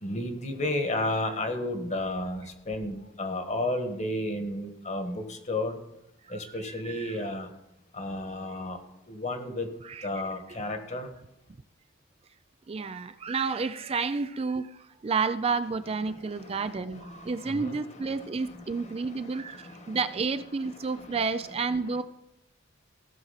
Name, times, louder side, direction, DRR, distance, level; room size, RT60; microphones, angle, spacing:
voice 1, 0.0-5.8 6.3-7.5 7.9-8.8 9.1-9.7 10.0-11.1 16.1-20.0 20.8-21.2 21.9-22.0, left 1 dB, 35° left, 6 dB, 1.5 m, -33 dB
voice 2, 6.2-7.3 8.5-8.6 9.8-10.1 12.7-22.0, right 4 dB, 30° right, 11 dB, 0.4 m, -31 dB
16.5 x 6.1 x 5.7 m, 0.82 s
head